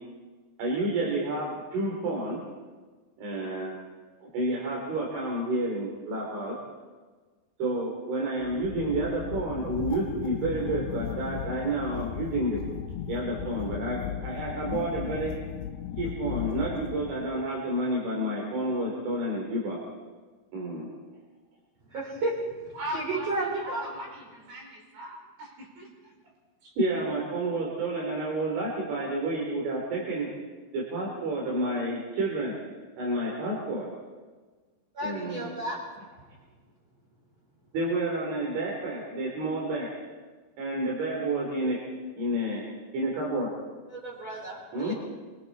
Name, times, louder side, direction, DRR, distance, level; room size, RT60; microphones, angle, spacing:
voice 1, 0.6-2.4 3.2-3.7 4.3-6.6 7.6-12.6 13.1-15.3 16.0-19.8 20.5-20.9 26.8-30.3 30.7-32.6 33.0-33.9 35.0-35.6 37.7-39.9 40.6-41.8 42.2-42.6 42.9-43.5 44.7-44.9, right 1 dB, 85° right, -3 dB, 6.0 m, -30 dB
sound 1, 8.4-17.5, left 11 dB, 80° left, 2.7 m, -36 dB
voice 2, 21.9-23.8 34.9-35.8 43.9-44.9, right 2 dB, 35° right, -6 dB, 5.1 m, -32 dB
voice 3, 22.7-26.1 26.6-26.8, equal, 55° right, -1 dB, 6.7 m, -40 dB
26.0 x 24.5 x 4.2 m, 1.4 s
omnidirectional pair, 5.3 m